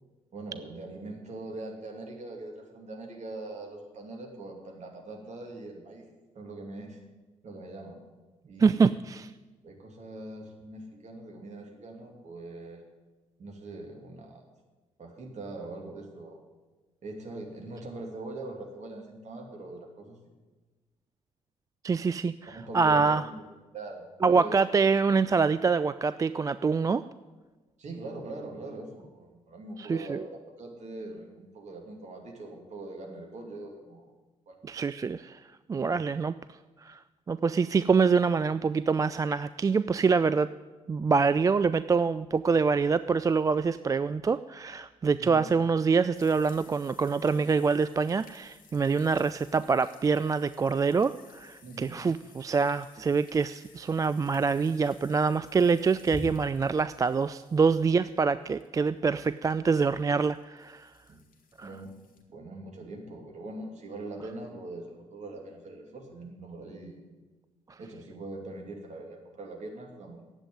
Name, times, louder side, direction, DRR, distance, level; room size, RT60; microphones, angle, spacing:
voice 1, 0.3-6.0 6.3-7.0 7.4-8.0 8.5-8.9 9.6-12.8 13.4-14.4 15.0-16.4 17.0-20.2 22.5-23.4 23.7-24.5 27.8-34.1 34.5-34.6 45.2-45.4 51.6-52.0 61.1-61.2 61.6-61.9 62.3-67.0 67.8-70.3, right 2 dB, 45° right, 1 dB, 2.8 m, -42 dB
voice 2, 8.6-9.3 21.8-23.2 24.2-27.1 29.8-30.2 34.6-35.4 35.7-36.3 36.8-37.0 37.3-40.5 40.9-60.9 61.6-61.7, right 5 dB, 20° right, 14 dB, 0.3 m, -25 dB
sound 1, 46.1-62.2, left 4 dB, 55° left, 1.6 m, -51 dB
10.5 x 8.2 x 9.6 m, 1.2 s
figure-of-eight pair, 40°, 17 cm